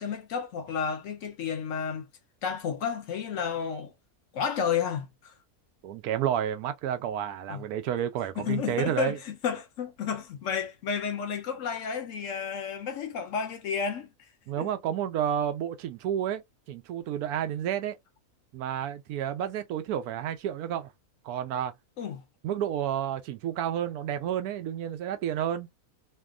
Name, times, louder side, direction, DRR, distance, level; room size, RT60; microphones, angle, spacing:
voice 1, 0.0-2.1 2.4-3.9 4.3-5.3 7.5-7.6 8.4-14.1 14.6-14.7 22.0-22.2, left 7 dB, 65° left, 0.9 m, -31 dB
voice 2, 5.8-9.2 14.5-16.4 16.7-18.0 18.5-20.9 21.2-21.7 22.4-25.7, right 10 dB, 85° right, 1.1 m, -30 dB
3.3 x 2.1 x 2.3 m
omnidirectional pair, 1.6 m